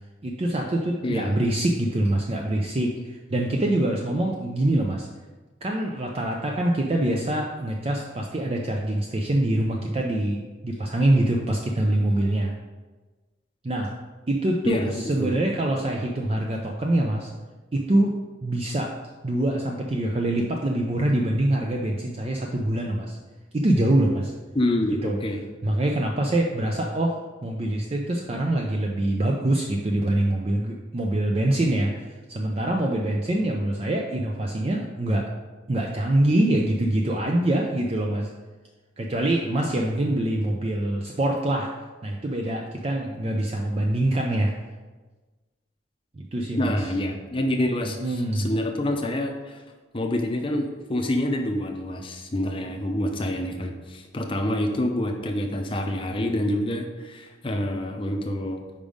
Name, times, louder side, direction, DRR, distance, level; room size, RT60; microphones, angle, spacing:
voice 1, 0.2-5.1 5.6-12.5 13.6-13.9 14.3-17.3 17.7-18.1 18.4-18.9 19.2-23.2 23.5-24.3 25.0-25.2 25.6-35.3 35.7-38.3 39.0-41.7 42.0-44.5 46.1-46.9 48.0-48.5, right 1 dB, 30° right, 0 dB, 0.5 m, -24 dB
voice 2, 24.5-25.4 46.6-49.6 49.9-58.6, left 1 dB, 25° left, 3 dB, 0.6 m, -27 dB
5.3 x 5.1 x 5.0 m, 1.3 s
head